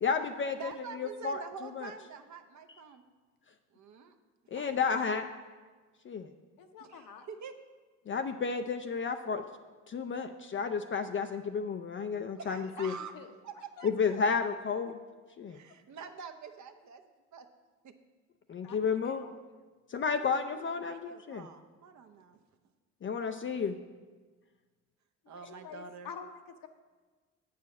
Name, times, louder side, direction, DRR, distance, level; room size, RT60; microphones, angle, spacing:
voice 1, 0.0-0.7 1.0-1.4 1.8-1.9 4.5-5.3 6.0-6.3 8.1-9.4 9.9-12.9 13.8-15.0 15.4-15.6 18.5-19.2 19.9-21.5 23.0-23.8, left 5 dB, 30° left, 7 dB, 0.5 m, -32 dB
voice 2, 0.6-3.0 3.7-4.1 4.5-4.8 6.8-7.5 12.4-13.1 13.4-14.2 15.5-17.5 17.8-17.9 20.2-22.4 25.3-26.1, right 6 dB, 50° right, 7 dB, 0.8 m, -47 dB
voice 3, 6.6-7.3 12.5-13.3 13.8-13.9 18.6-19.4 25.3-26.7, left 6 dB, 60° left, 6 dB, 0.9 m, -48 dB
8.2 x 4.9 x 5.9 m, 1.4 s
supercardioid pair, 65°, 38 cm